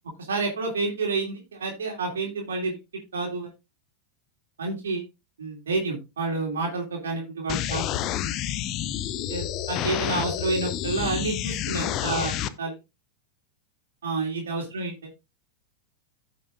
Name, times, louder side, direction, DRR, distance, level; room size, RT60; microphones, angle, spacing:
voice 1, 0.3-2.8 3.1-3.5 4.6-5.0 5.4-7.8 9.3-12.7 14.0-14.9, right 3 dB, 65° right, 0 dB, 3.1 m, -29 dB
sound 1, 7.5-12.5, left 11 dB, 35° left, 0.7 m, -29 dB
15.5 x 5.9 x 2.5 m, 0.25 s
figure-of-eight pair, 90°, 0 cm